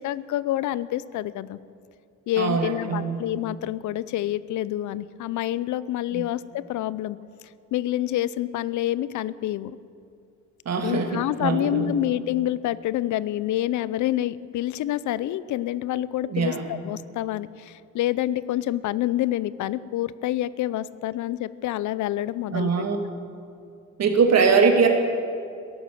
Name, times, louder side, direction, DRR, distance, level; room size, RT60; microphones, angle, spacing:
voice 1, 0.0-1.6 2.3-7.2 7.7-9.8 10.8-22.9, left 13 dB, 75° left, 18 dB, 0.6 m, -27 dB
voice 2, 2.4-3.2 6.1-6.2 10.7-12.0 16.3-16.7 22.5-23.0 24.0-24.9, right 5 dB, 60° right, 4 dB, 2.2 m, -22 dB
14.0 x 11.0 x 7.9 m, 2.4 s
cardioid pair, 90°, 30 cm